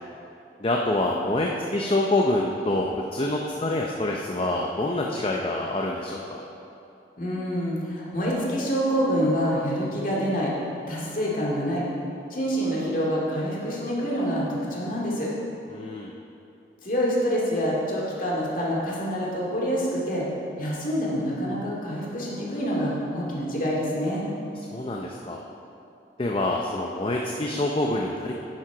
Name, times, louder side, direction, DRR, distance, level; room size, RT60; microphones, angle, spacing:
voice 1, 0.6-6.4 15.7-16.1 24.7-25.4 26.2-28.3, left 1 dB, 30° left, -1 dB, 0.5 m, -26 dB
voice 2, 7.2-10.5 10.9-11.9 12.3-15.3 16.8-20.3 20.6-24.3, equal, 45° left, -4 dB, 2.2 m, -26 dB
10.5 x 7.5 x 5.0 m, 2.7 s
head